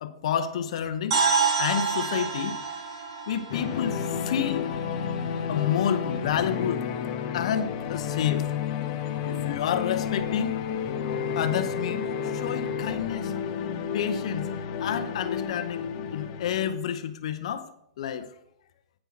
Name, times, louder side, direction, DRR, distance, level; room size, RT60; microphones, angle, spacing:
voice 1, 0.0-1.2 1.5-2.8 3.3-4.6 5.5-6.8 7.3-8.5 9.1-10.5 11.3-13.3 13.9-14.5 14.8-17.7 18.0-18.3, left 9 dB, 60° left, 10 dB, 0.7 m, -29 dB
sound 1, 1.1-5.1, right 5 dB, 55° right, 2.5 m, -28 dB
sound 2, 3.5-16.8, left 7 dB, 40° left, 1.0 m, -31 dB
8.9 x 5.4 x 5.8 m, 0.77 s
hypercardioid pair, 150°, 4 cm